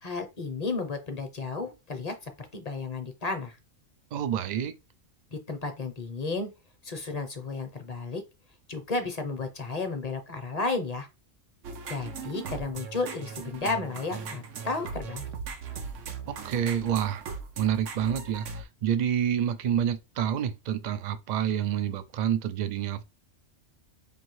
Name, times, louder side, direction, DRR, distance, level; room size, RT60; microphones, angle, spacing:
voice 1, 0.0-3.6 5.3-6.5 6.8-8.2 8.7-11.1 11.9-15.3, left 3 dB, 40° left, 0.7 m, -33 dB
voice 2, 4.1-4.8 16.3-17.2 17.6-23.0, right 9 dB, 65° right, 0.4 m, -28 dB
sound 1, 11.6-18.6, right 5 dB, 90° right, 1.1 m, -39 dB
5.3 x 2.7 x 3.0 m
omnidirectional pair, 1.3 m